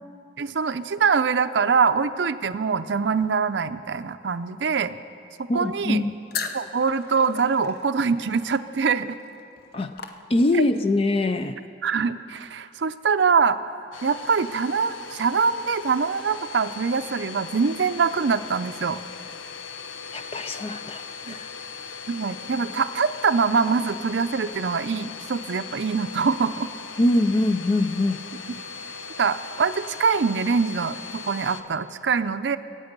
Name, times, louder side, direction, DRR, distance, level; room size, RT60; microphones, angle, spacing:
voice 1, 0.4-5.0 5.4-6.1 6.5-9.2 10.5-10.6 11.8-13.6 14.0-19.0 21.3-21.4 22.1-26.7 28.5-28.6 29.2-32.6, right 5 dB, 65° right, 12 dB, 0.5 m, -24 dB
voice 2, 5.5-6.1 9.7-9.9 10.3-11.5 20.1-21.5 27.0-28.2, left 2 dB, 30° left, 8 dB, 0.4 m, -23 dB
sound 1, 6.3-10.8, left 5 dB, 55° left, 0.8 m, -38 dB
Domestic sounds home sounds, 13.9-31.6, left 5 dB, 85° left, 0.8 m, -39 dB
23.5 x 8.8 x 5.3 m, 2.5 s
head